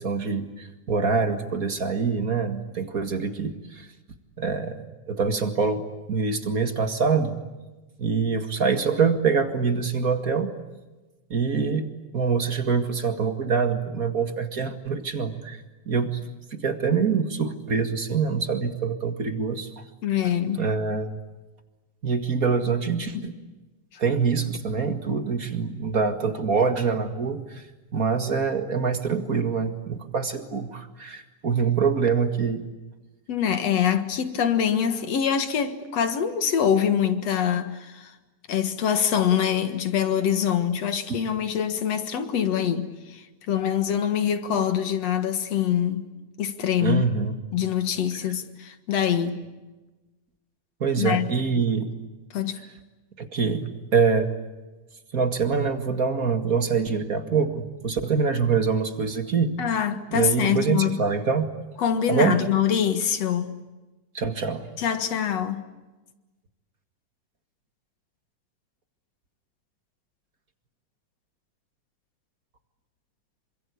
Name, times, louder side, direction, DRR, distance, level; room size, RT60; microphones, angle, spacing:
voice 1, 0.0-3.9 4.4-7.3 8.0-10.5 11.3-11.9 12.1-16.2 16.5-19.7 20.6-21.2 22.0-23.3 24.0-27.7 27.9-32.7 46.8-47.4 50.8-51.9 53.2-54.3 55.1-59.6 60.1-61.5 62.1-62.4 64.1-64.7, right 5 dB, 35° right, 1.9 m, -25 dB
voice 2, 20.0-20.6 23.1-23.3 23.9-24.0 33.3-38.1 38.5-46.1 46.4-47.0 47.5-49.4 51.0-51.3 51.5-51.7 52.3-52.6 59.6-61.0 61.8-63.5 64.8-65.6, left 8 dB, 60° left, 2.6 m, -24 dB
27.5 x 25.5 x 8.6 m
omnidirectional pair, 3.5 m